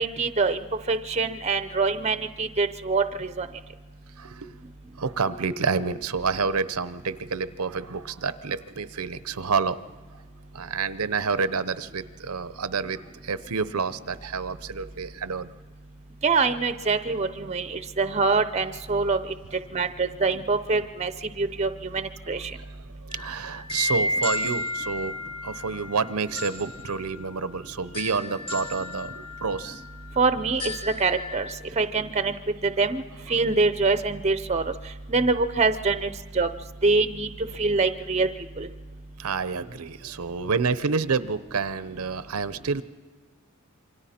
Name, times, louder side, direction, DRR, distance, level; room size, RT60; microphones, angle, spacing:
voice 1, 0.0-3.5 16.2-19.2 19.7-21.1 21.4-22.5 30.2-31.4 31.8-32.3 32.6-33.0 33.3-34.6 35.1-36.1 36.3-36.5 36.8-37.3 37.6-38.3 38.6-38.7, right 4 dB, 30° right, 11 dB, 0.7 m, -24 dB
voice 2, 4.2-4.5 5.0-9.8 10.1-10.2 10.5-15.5 22.5-25.1 25.4-29.8 33.5-33.6 39.2-42.8, right 5 dB, 85° right, 13 dB, 0.7 m, -29 dB
sound 1, 23.1-31.5, left 1 dB, 25° left, 1.6 m, -33 dB
27.5 x 24.5 x 4.3 m, 1.4 s
head